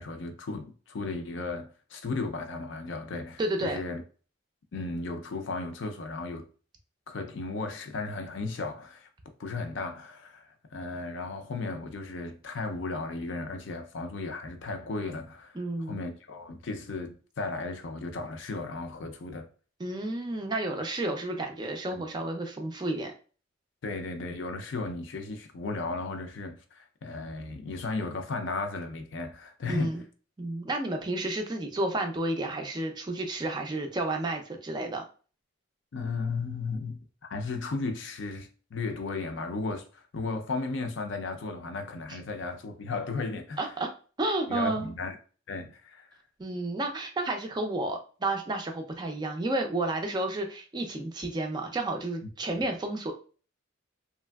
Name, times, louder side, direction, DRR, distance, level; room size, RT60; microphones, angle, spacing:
voice 1, 0.0-4.0 4.7-6.4 7.1-9.1 9.4-19.5 21.9-22.0 23.8-30.0 35.9-37.0 37.3-43.6 44.5-45.2 45.5-46.2, left 3 dB, 60° left, 0.5 m, -35 dB
voice 2, 3.4-3.8 15.6-16.0 19.8-23.1 29.7-30.0 30.4-35.0 42.1-42.2 43.6-43.9 44.2-45.0 46.4-53.1, right 2 dB, 20° right, 0.3 m, -31 dB
3.1 x 2.5 x 2.2 m
head